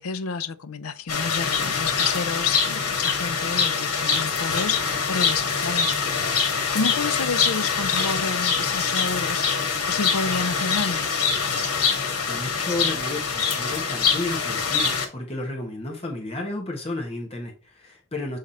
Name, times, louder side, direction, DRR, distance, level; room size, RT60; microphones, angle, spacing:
voice 1, 0.0-6.0 6.7-9.6 9.9-11.1, left 5 dB, 75° left, 0.5 m, -29 dB
sound 1, 1.1-15.1, left 5 dB, 90° left, 1.6 m, -24 dB
voice 2, 12.3-18.4, left 2 dB, 25° left, 1.5 m, -32 dB
7.4 x 3.6 x 4.2 m
head